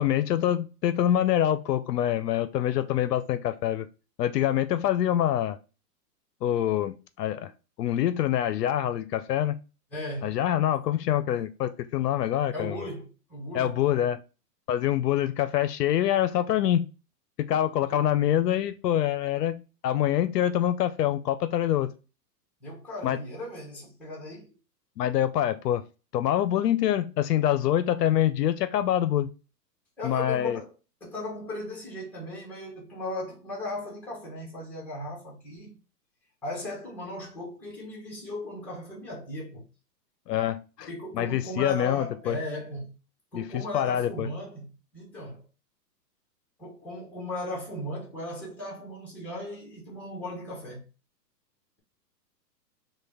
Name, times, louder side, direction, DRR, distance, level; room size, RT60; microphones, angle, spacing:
voice 1, 0.0-3.9 4.2-5.6 6.4-7.5 7.8-9.6 10.2-12.8 13.5-14.2 14.7-16.9 17.5-21.9 23.0-23.2 25.0-25.8 26.1-29.3 30.0-30.6 40.3-40.9 41.1-42.4 43.3-44.3, left 11 dB, 70° left, 0.5 m, -25 dB
voice 2, 9.9-10.4 12.5-13.8 17.9-18.0 22.6-24.5 30.0-30.7 31.0-35.8 36.4-39.6 40.8-43.0 43.3-45.5 46.6-50.8, left 1 dB, 5° left, 0.9 m, -37 dB
3.2 x 2.3 x 3.3 m
hypercardioid pair, 140°, 50 cm